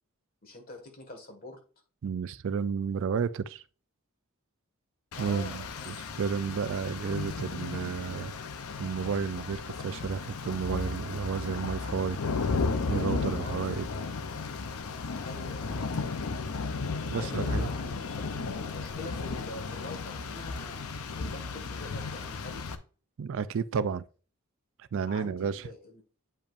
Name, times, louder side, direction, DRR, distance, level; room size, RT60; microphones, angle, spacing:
voice 1, 0.4-1.6 5.1-6.3 13.4-14.1 15.2-15.9 17.1-20.8 21.1-22.7 25.1-26.0, left 2 dB, 45° left, 1.7 m, -45 dB
voice 2, 2.0-3.6 5.2-8.3 8.8-12.2 12.9-13.9 17.1-17.7 23.2-24.0 24.9-25.6, right 6 dB, 65° right, 0.4 m, -32 dB
Rain, 5.1-22.8, left 4 dB, 80° left, 0.7 m, -34 dB
8.7 x 5.1 x 2.5 m
head